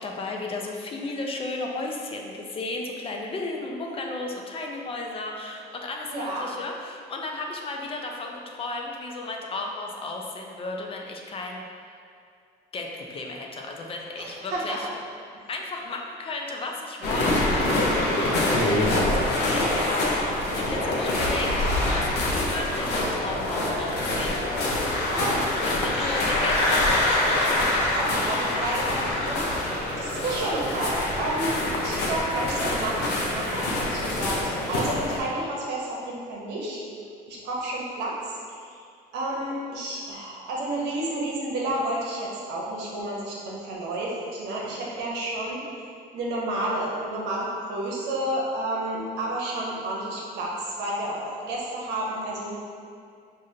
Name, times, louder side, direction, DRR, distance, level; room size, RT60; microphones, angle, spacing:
voice 1, 0.0-11.6 12.7-14.9 15.5-17.7 18.2-20.3 20.5-21.5 21.9-25.0 25.7-27.5 33.3-33.6, left 2 dB, 35° left, 1 dB, 0.5 m, -34 dB
voice 2, 6.1-6.4 14.2-14.9 17.9-18.2 25.1-25.6 27.9-31.6 31.8-33.0 33.3-34.4 34.7-36.8 37.3-38.8 39.1-45.6 46.1-50.5 50.8-52.6, right 1 dB, 85° right, -4 dB, 0.8 m, -31 dB
sound 1, 17.0-35.2, left 1 dB, 80° left, 0.7 m, -25 dB
4.9 x 2.6 x 2.7 m, 2.3 s
cardioid pair, 110°, 17 cm